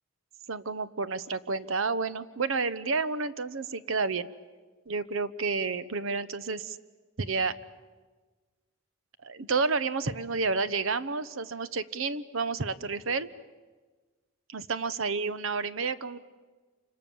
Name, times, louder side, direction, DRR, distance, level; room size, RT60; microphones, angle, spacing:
voice 1, 0.5-4.3 4.9-6.8 7.2-7.5 9.2-13.3 14.5-16.2, right 4 dB, 75° right, 15 dB, 0.9 m, -30 dB
28.0 x 26.0 x 7.1 m, 1.4 s
head